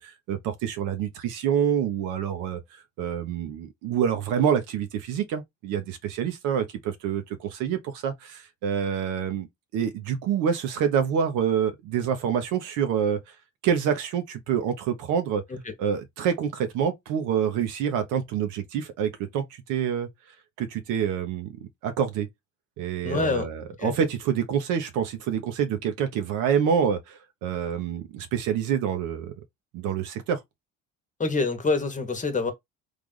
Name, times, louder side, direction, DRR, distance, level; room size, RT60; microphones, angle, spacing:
voice 1, 0.0-2.6 3.0-9.5 9.7-13.2 13.6-15.4 15.8-20.1 20.6-21.5 21.8-22.3 22.8-29.3 29.7-30.4, right 8 dB, 85° right, 0.8 m, -27 dB
voice 2, 23.0-23.5 23.8-23.9 31.2-32.5, left 4 dB, 25° left, 1.0 m, -26 dB
3.3 x 2.5 x 3.7 m
cardioid pair, 95°, 30 cm